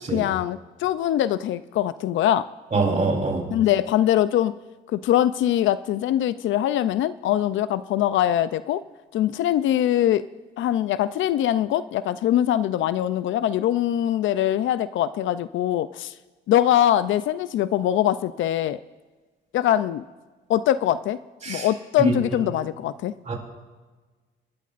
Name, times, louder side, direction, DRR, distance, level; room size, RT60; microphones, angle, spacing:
voice 1, 0.1-2.5 3.5-4.5 4.9-8.8 9.1-10.2 10.6-16.1 16.5-18.8 19.5-20.0 20.5-21.2 21.5-23.1, left 12 dB, 75° left, 15 dB, 0.5 m, -22 dB
voice 2, 2.7-3.4 21.4-21.7 22.0-22.1 22.4-22.5 23.3-23.4, right 3 dB, 35° right, 1 dB, 3.7 m, -24 dB
27.0 x 12.5 x 2.5 m, 1.3 s
cardioid pair, 90°, 20 cm